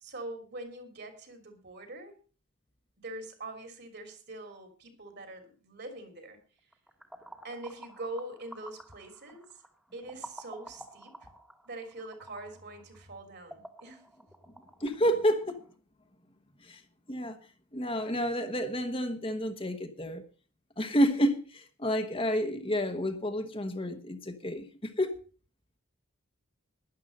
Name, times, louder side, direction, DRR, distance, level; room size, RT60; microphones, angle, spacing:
voice 1, 0.0-2.1 3.0-6.4 7.4-9.5 9.9-11.2 11.6-14.0, right 2 dB, 50° right, 3.1 m, -43 dB
sound 1, 6.7-15.7, right 1 dB, 5° right, 1.5 m, -51 dB
voice 2, 14.8-15.6 16.6-16.8 17.1-17.4 17.7-20.2 20.8-25.1, equal, 25° left, 1.2 m, -29 dB
12.5 x 10.5 x 5.3 m
head